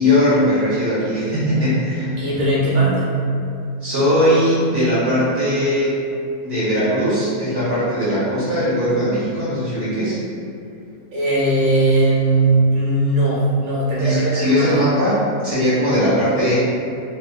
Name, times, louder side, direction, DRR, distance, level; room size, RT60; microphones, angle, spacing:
voice 1, 0.0-2.2 3.8-6.1 6.4-10.2 14.0-16.6, equal, 15° right, -13 dB, 1.4 m, -19 dB
voice 2, 2.2-3.2 11.1-14.8, right 2 dB, 85° right, -7 dB, 1.5 m, -18 dB
3.4 x 2.8 x 2.2 m, 2.5 s
omnidirectional pair, 1.7 m